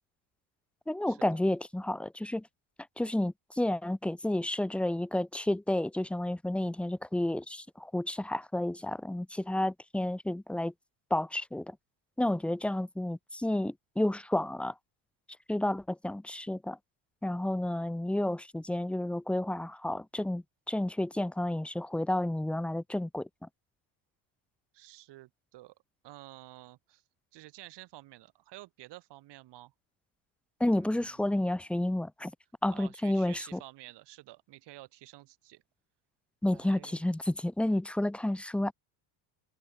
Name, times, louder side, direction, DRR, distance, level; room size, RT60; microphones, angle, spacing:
voice 1, 0.9-2.4 3.0-10.7 11.1-11.8 12.2-14.7 15.5-16.8 17.2-23.3 30.6-32.3 32.6-33.6 36.4-38.7, left 1 dB, 5° left, 0.5 m, -31 dB
voice 2, 24.7-25.8 26.0-27.0 27.3-29.7 30.7-31.3 32.7-35.6 36.5-37.0, right 17 dB, 60° right, 2.4 m, -51 dB
cardioid pair, 120°, 46 cm